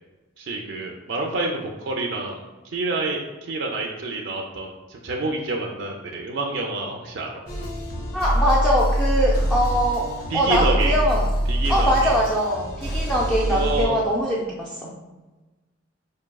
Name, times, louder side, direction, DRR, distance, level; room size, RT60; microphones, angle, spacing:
voice 1, 0.4-2.4 2.7-7.3 10.3-11.0 11.5-12.1 13.5-14.0, right 3 dB, 70° right, 0 dB, 0.4 m, -28 dB
sound 1, 7.5-13.8, equal, 55° left, 0.8 m, -24 dB
voice 2, 8.1-11.3 11.7-14.9, equal, 5° left, -5 dB, 0.4 m, -22 dB
5.7 x 2.6 x 2.2 m, 1.2 s
head